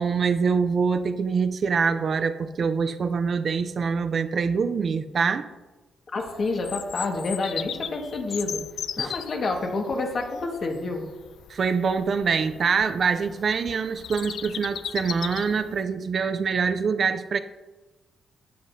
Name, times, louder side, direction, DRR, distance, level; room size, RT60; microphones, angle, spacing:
voice 1, 0.0-5.5 9.0-9.1 11.5-17.4, right 5 dB, 50° right, 10 dB, 0.5 m, -25 dB
voice 2, 6.1-8.6 9.0-11.0, left 3 dB, 50° left, 2 dB, 1.6 m, -28 dB
Bird vocalization bird call bird song, 6.2-15.8, left 9 dB, 70° left, 0.3 m, -37 dB
12.5 x 7.7 x 2.7 m, 1.2 s
cardioid pair, 95°, 0 cm